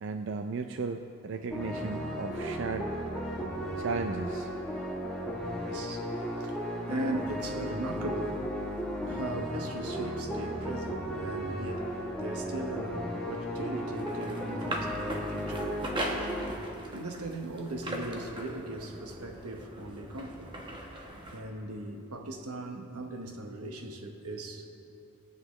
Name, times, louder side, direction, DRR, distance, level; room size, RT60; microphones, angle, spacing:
voice 1, 0.0-3.0 3.8-4.5, right 4 dB, 55° right, 6 dB, 0.4 m, -35 dB
sound 1, 1.5-16.5, equal, 5° left, 1.1 m, -35 dB
voice 2, 5.6-8.6 8.8-15.8 16.9-20.5 21.3-24.7, right 1 dB, 90° right, 4 dB, 1.1 m, -39 dB
sound 2, 13.7-21.4, right 1 dB, 20° right, 1.0 m, -40 dB
20.5 x 7.8 x 3.2 m, 2.8 s
head